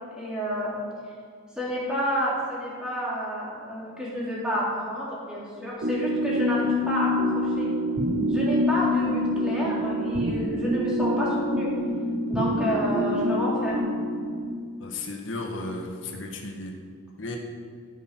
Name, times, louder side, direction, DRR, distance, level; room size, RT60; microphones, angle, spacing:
voice 1, 0.1-0.7 1.5-7.7 8.3-11.7 12.3-13.9, equal, 5° right, -7 dB, 3.4 m, -30 dB
sound 1, 5.8-14.5, left 1 dB, 75° right, 1.1 m, -26 dB
voice 2, 14.8-16.7 17.2-17.4, left 2 dB, 90° left, 1 dB, 1.6 m, -34 dB
14.0 x 6.4 x 6.1 m, 2.1 s
head